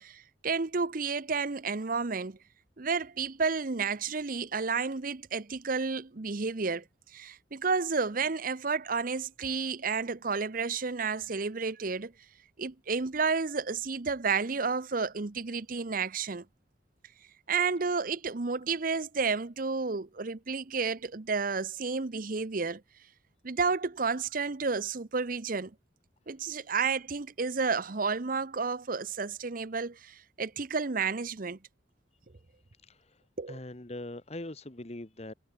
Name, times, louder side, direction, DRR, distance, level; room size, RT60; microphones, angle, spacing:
voice 1, 0.0-2.4 2.8-6.8 7.1-12.1 12.6-16.5 17.5-22.8 23.4-25.7 26.3-31.6 33.4-33.6, right 4 dB, 45° right, 0.8 m, -31 dB
voice 2, 32.7-35.3, left 1 dB, 35° left, 1.3 m, -43 dB
head